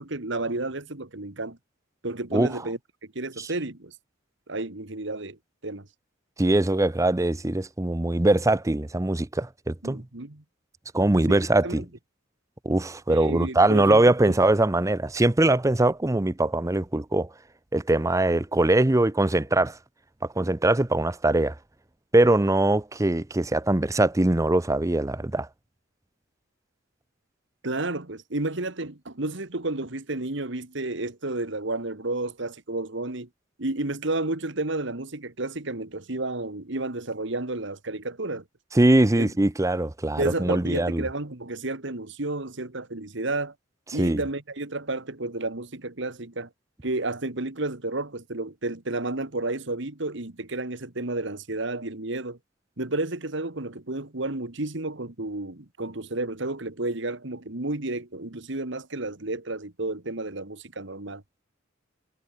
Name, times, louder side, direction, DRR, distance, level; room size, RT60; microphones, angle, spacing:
voice 1, 0.0-1.6 2.0-3.9 4.5-5.4 5.6-5.9 9.8-10.4 11.3-11.9 13.1-14.3 27.6-33.3 33.6-38.4 39.2-39.3 40.2-43.5 43.9-46.5 46.8-52.4 52.8-61.2, right 2 dB, 65° right, 2.1 m, -31 dB
voice 2, 2.3-2.6 3.4-3.5 6.4-10.0 10.9-11.8 12.6-17.3 17.7-19.8 20.4-21.5 22.1-25.5 38.7-41.0 44.0-44.2, right 2 dB, 15° right, 0.6 m, -22 dB
head